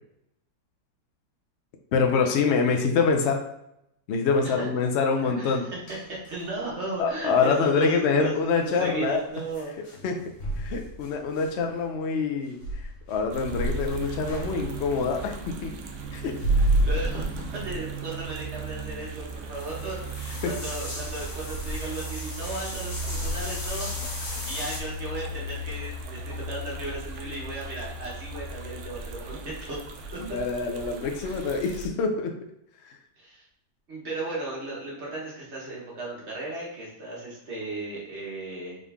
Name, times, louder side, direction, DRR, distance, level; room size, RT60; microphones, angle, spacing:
voice 1, 1.9-3.4 4.1-5.6 7.0-9.2 10.0-10.2 10.6-15.7 16.1-16.4 30.2-32.3 32.8-33.0, left 5 dB, 90° left, 3 dB, 0.6 m, -25 dB
voice 2, 5.2-5.7 6.1-10.0 16.8-23.9 24.2-29.8 30.1-30.2 31.2-31.5 33.2-33.5 33.9-38.8, right 2 dB, 40° right, -4 dB, 1.4 m, -35 dB
sound 1, 5.9-6.7 7.2-7.5 8.5-11.9 12.6-15.0 16.2-17.9 18.2-18.3 18.7-24.8, right 1 dB, 45° left, 1.2 m, -32 dB
sound 2, 13.3-31.9, right 1 dB, 70° right, 0.7 m, -36 dB
3.8 x 3.8 x 3.5 m, 0.80 s
omnidirectional pair, 1.9 m